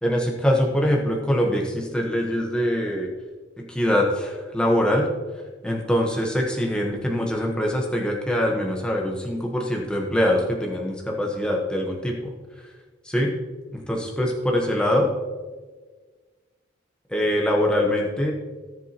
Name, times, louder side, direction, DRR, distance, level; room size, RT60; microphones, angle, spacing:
voice 1, 0.0-3.1 3.6-5.1 5.6-12.3 13.0-13.3 13.7-15.1 17.1-18.3, equal, 5° left, -1 dB, 1.2 m, -23 dB
17.5 x 7.1 x 3.0 m, 1.4 s
head